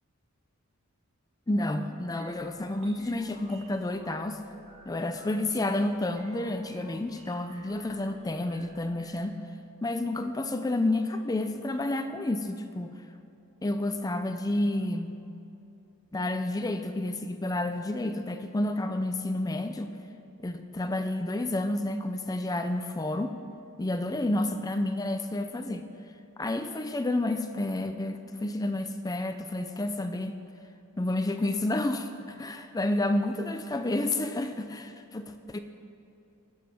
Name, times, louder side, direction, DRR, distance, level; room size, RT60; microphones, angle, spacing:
voice 1, 1.5-4.4 4.9-9.4 9.8-12.9 13.6-15.2 16.1-19.9 20.4-23.4 23.8-25.8 26.4-30.3 31.0-35.6, left 1 dB, 15° left, 8 dB, 0.4 m, -30 dB
sound 1, 1.5-9.2, right 2 dB, 25° right, 1.4 m, -54 dB
20.0 x 7.4 x 4.4 m, 2.8 s
head